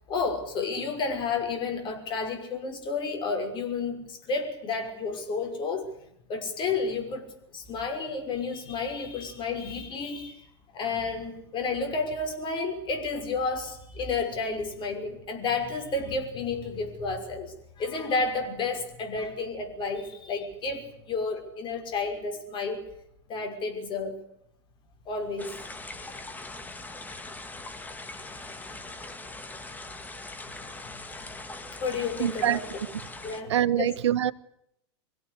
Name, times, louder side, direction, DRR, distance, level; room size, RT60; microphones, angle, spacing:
voice 1, 0.1-5.9 6.3-10.5 10.7-22.8 23.3-24.2 25.1-25.5 31.8-32.7 33.2-33.9, left 4 dB, 35° left, 6.1 m, -31 dB
sound 1, 25.4-33.4, left 2 dB, 10° left, 2.4 m, -41 dB
voice 2, 32.2-32.9 33.5-34.3, right 11 dB, 75° right, 1.1 m, -25 dB
24.5 x 17.0 x 8.4 m
hypercardioid pair, 105°, 15 cm